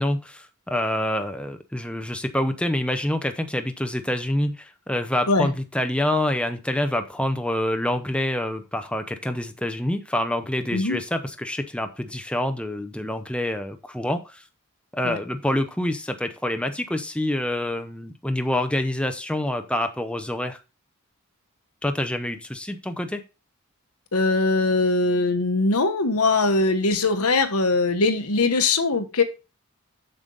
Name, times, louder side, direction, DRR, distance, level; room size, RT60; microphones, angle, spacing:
voice 1, 0.0-14.4 14.9-20.6 21.8-23.2, left 1 dB, 5° left, 7 dB, 0.6 m, -26 dB
voice 2, 24.1-29.2, left 3 dB, 80° left, 7 dB, 1.3 m, -21 dB
7.3 x 6.8 x 3.8 m, 0.30 s
head